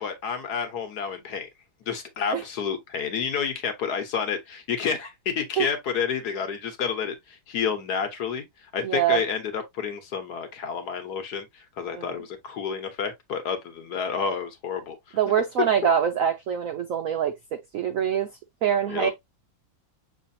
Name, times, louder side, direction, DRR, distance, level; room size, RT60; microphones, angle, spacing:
voice 1, 0.0-1.5 1.9-8.5 8.7-11.5 11.8-15.2 18.9-19.1, left 6 dB, 60° left, 1.3 m, -30 dB
voice 2, 8.8-9.2 11.9-12.2 15.1-17.3 17.7-18.3 18.6-19.1, right 9 dB, 85° right, 0.7 m, -24 dB
6.2 x 3.3 x 2.6 m
omnidirectional pair, 2.1 m